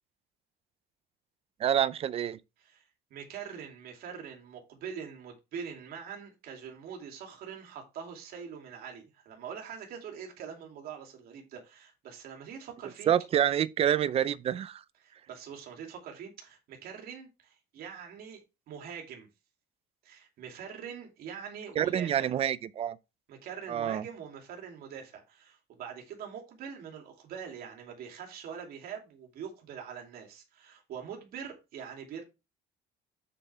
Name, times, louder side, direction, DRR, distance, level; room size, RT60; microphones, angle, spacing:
voice 1, 1.6-2.4 13.1-14.8 21.8-23.0 23.7-24.0, right 10 dB, 35° right, 0.5 m, -27 dB
voice 2, 2.6-13.1 15.0-18.4 18.7-19.3 20.0-22.4 23.3-32.2, right 7 dB, 60° right, 2.8 m, -44 dB
7.2 x 6.8 x 3.4 m
cardioid pair, 155°, 18 cm